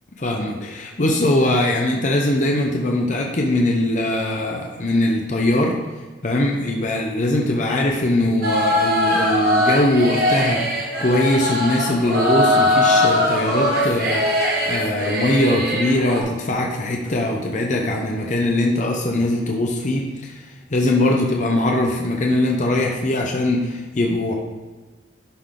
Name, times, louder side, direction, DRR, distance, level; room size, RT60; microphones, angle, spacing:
voice 1, 0.2-5.8 6.2-20.4 20.7-24.3, left 1 dB, 40° left, 0 dB, 0.7 m, -21 dB
sound 1, 8.4-16.2, left 1 dB, 55° right, 1.2 m, -20 dB
11.0 x 3.9 x 3.7 m, 1.3 s
head